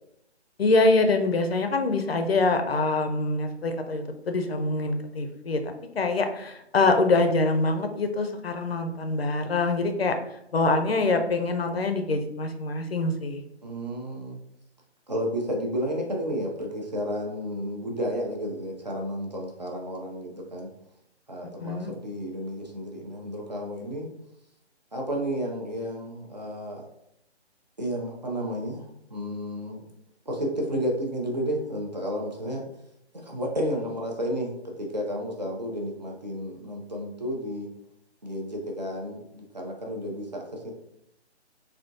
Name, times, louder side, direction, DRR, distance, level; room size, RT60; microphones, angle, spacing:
voice 1, 0.6-10.2 10.5-13.4 21.6-21.9, left 3 dB, 60° left, 6 dB, 0.5 m, -25 dB
voice 2, 13.6-14.4 15.1-20.7 21.3-24.1 24.9-26.8 27.8-28.8 29.1-29.9 30.3-32.6 33.2-37.7 38.2-40.7, equal, 40° right, -1 dB, 0.5 m, -32 dB
3.5 x 2.3 x 2.5 m, 0.80 s
hypercardioid pair, 180°, 34 cm